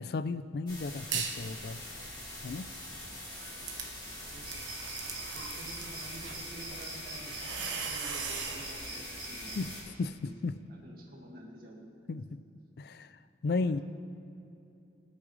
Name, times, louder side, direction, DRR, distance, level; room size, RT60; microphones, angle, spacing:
voice 1, 0.0-1.8 2.4-2.7 9.5-9.7 10.0-10.6 12.1-12.4 12.8-13.8, left 3 dB, 55° left, 14 dB, 0.4 m, -34 dB
sound 1, 0.7-9.8, left 1 dB, 25° left, 3.3 m, -44 dB
sound 2, 1.0-1.5 1.9-8.7, right 6 dB, 80° right, 1.1 m, -40 dB
sound 3, 4.4-9.7, right 2 dB, 25° right, 2.7 m, -45 dB
voice 2, 5.2-9.7 10.2-12.2 13.5-13.8, right 1 dB, 50° right, -1 dB, 2.0 m, -50 dB
23.0 x 8.6 x 3.3 m, 2.8 s
head